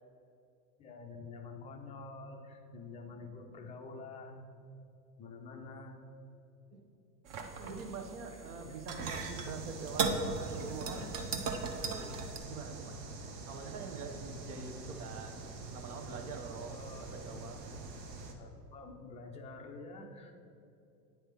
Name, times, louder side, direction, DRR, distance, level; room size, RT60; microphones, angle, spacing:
voice 1, 0.8-4.5 5.2-6.0 7.3-7.6 8.6-8.7 16.7-17.1 18.4-20.3, left 3 dB, 15° left, 4 dB, 0.3 m, -48 dB
sound 1, 7.2-12.4, right 4 dB, 45° right, 0.8 m, -37 dB
voice 2, 7.6-11.2 11.7-12.1 12.4-13.0 13.5-15.5 15.7-17.6, right 4 dB, 65° right, 5 dB, 1.1 m, -44 dB
sound 2, 9.0-18.3, right 3 dB, 90° right, 1.0 m, -46 dB
9.1 x 3.3 x 5.9 m, 2.7 s
hypercardioid pair, 105°, 49 cm